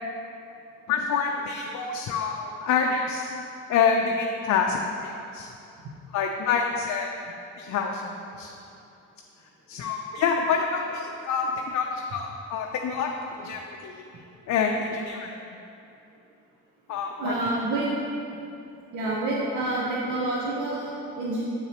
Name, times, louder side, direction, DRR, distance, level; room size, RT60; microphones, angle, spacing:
voice 1, 0.9-3.3 3.7-5.5 6.1-8.5 9.7-14.0 14.5-15.4 16.9-17.3, left 5 dB, 65° left, 2 dB, 0.5 m, -27 dB
voice 2, 16.9-17.9 18.9-21.4, right 2 dB, 85° right, -5 dB, 1.0 m, -28 dB
7.0 x 6.7 x 2.9 m, 2.7 s
cardioid pair, 90°, 30 cm